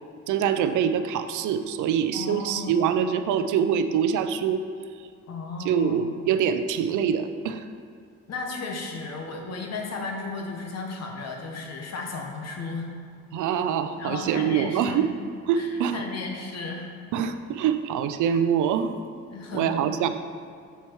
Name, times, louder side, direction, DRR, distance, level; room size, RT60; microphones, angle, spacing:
voice 1, 0.3-4.6 5.6-7.6 13.3-15.1 15.5-16.0 17.1-18.9 19.5-20.1, right 8 dB, 80° right, 9 dB, 0.5 m, -24 dB
voice 2, 2.1-2.7 5.3-6.1 8.3-12.9 13.8-15.1 15.5-16.9 19.3-19.7, left 3 dB, 60° left, 1 dB, 1.2 m, -34 dB
7.0 x 4.5 x 4.5 m, 2.2 s
cardioid pair, 90°, 30 cm